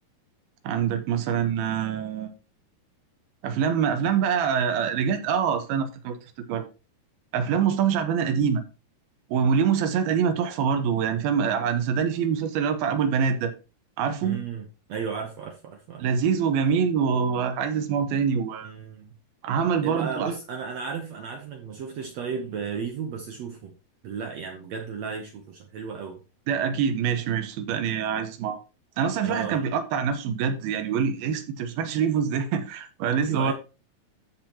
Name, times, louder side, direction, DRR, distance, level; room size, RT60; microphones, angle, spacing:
voice 1, 0.6-2.3 3.4-6.2 6.5-6.6 7.3-8.6 9.3-13.5 14.0-14.4 16.0-18.7 19.4-20.3 26.5-28.6 29.0-33.5, right 7 dB, 90° right, 2.9 m, -25 dB
voice 2, 14.2-16.0 18.6-19.1 19.8-23.7 24.0-26.2 29.2-29.6 33.1-33.5, right 6 dB, 70° right, 1.7 m, -34 dB
13.5 x 5.8 x 2.9 m
omnidirectional pair, 4.2 m